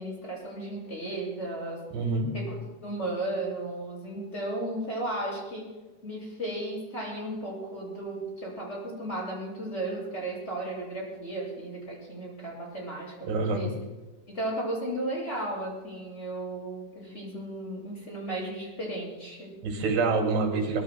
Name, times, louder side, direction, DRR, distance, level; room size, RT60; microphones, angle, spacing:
voice 1, 0.0-1.8 2.3-2.5 2.8-5.7 6.0-13.7 14.3-19.5, right 1 dB, 15° left, -3 dB, 6.9 m, -35 dB
voice 2, 1.9-2.3 13.2-13.7 19.6-20.8, right 3 dB, 90° right, 2 dB, 4.4 m, -26 dB
24.0 x 21.5 x 2.3 m, 1.2 s
omnidirectional pair, 4.7 m